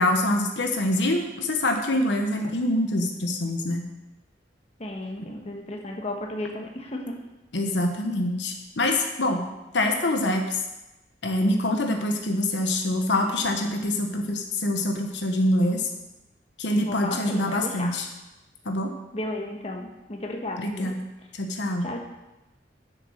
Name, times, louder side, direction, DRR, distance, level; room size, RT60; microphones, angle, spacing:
voice 1, 0.0-3.9 7.5-9.4 9.7-10.6 11.2-15.8 16.6-18.1 18.6-18.9 20.6-21.0 21.4-21.9, left 1 dB, 90° left, 4 dB, 1.1 m, -25 dB
voice 2, 4.8-7.2 16.8-18.0 19.1-20.9 21.8-22.0, left 1 dB, 40° left, 1 dB, 1.3 m, -34 dB
7.5 x 6.8 x 6.5 m, 1.0 s
head